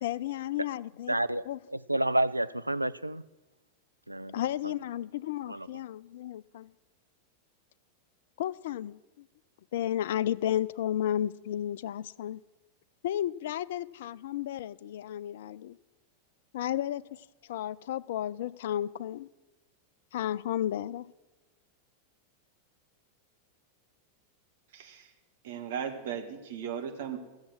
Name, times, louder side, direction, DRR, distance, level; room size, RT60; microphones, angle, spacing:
voice 1, 0.0-1.2 1.5-1.6 4.3-6.7 8.4-9.3 9.7-12.4 13.0-15.8 16.5-19.3 20.1-21.1, left 11 dB, 55° left, 0.3 m, -33 dB
voice 2, 1.1-1.4 1.7-3.2 4.1-4.7 5.5-5.7, right 1 dB, 85° right, 0.3 m, -30 dB
voice 3, 24.7-25.1 25.4-27.2, right 8 dB, 55° right, 1.5 m, -37 dB
14.5 x 7.2 x 7.5 m
figure-of-eight pair, 90°, 0 cm